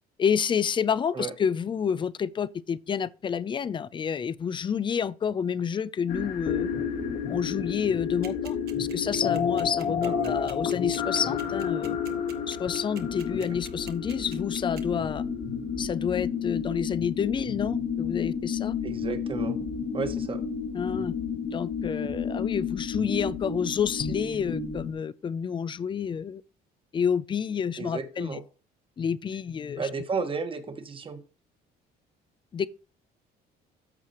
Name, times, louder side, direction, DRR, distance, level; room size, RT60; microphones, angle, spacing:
voice 1, 0.2-6.7 7.3-12.0 12.5-15.2 15.8-18.7 20.7-21.1 21.4-26.4 26.9-28.4 29.0-29.9 32.5-32.7, left 7 dB, 30° left, 0.4 m, -29 dB
sound 1, 6.1-24.9, left 7 dB, 60° left, 1.8 m, -31 dB
sound 2, 8.2-14.8, right 10 dB, 65° right, 1.5 m, -45 dB
voice 2, 10.0-10.5 13.3-13.5 18.8-19.6 19.9-20.4 27.8-28.4 29.8-31.2, right 4 dB, 30° right, 1.4 m, -33 dB
13.5 x 4.8 x 3.0 m
cardioid pair, 110°, 17 cm